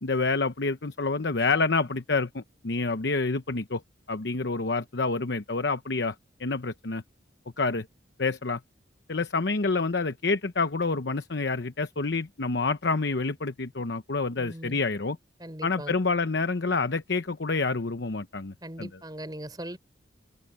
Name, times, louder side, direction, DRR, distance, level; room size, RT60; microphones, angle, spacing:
voice 1, 0.0-3.8 4.1-6.1 6.4-7.0 7.6-7.9 8.2-8.6 9.1-15.2 15.6-18.9, left 3 dB, 70° left, 0.9 m, -28 dB
voice 2, 14.4-14.8 15.4-16.0 18.6-19.8, right 1 dB, 20° right, 5.1 m, -39 dB
head